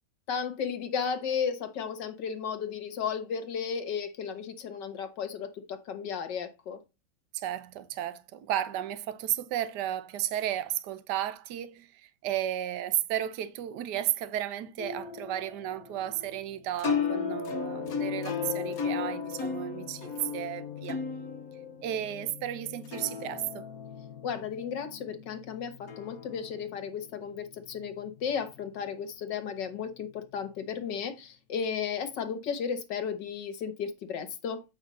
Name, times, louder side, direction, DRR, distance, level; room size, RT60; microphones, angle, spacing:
voice 1, 0.3-6.8 24.2-34.6, left 7 dB, 75° left, 1.8 m, -34 dB
voice 2, 7.3-21.0 21.8-23.6, right 12 dB, 70° right, 1.4 m, -33 dB
sound 1, 14.8-28.8, left 6 dB, 55° left, 1.6 m, -36 dB
8.1 x 5.4 x 4.0 m
omnidirectional pair, 1.9 m